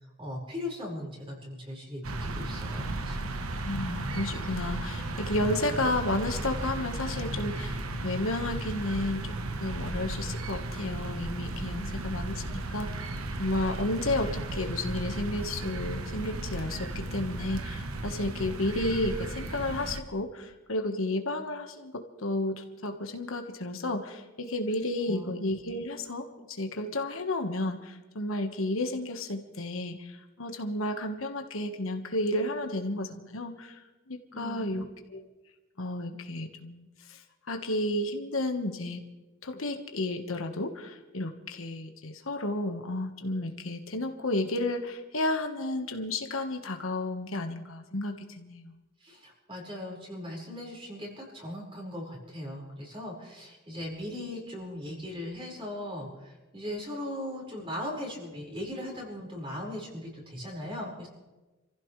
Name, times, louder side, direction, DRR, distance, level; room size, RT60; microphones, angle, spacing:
voice 1, 0.2-3.3 11.7-12.6 25.1-25.3 34.3-34.9 49.0-61.1, left 1 dB, 25° right, -2 dB, 5.1 m, -39 dB
sound 1, 2.0-20.0, right 2 dB, 85° right, 1.1 m, -35 dB
voice 2, 3.5-13.1 13.4-26.3 26.6-35.2 35.8-37.2 37.5-39.0 39.4-48.8, left 1 dB, 70° left, 5 dB, 1.4 m, -32 dB
27.5 x 15.5 x 3.3 m, 1.1 s
head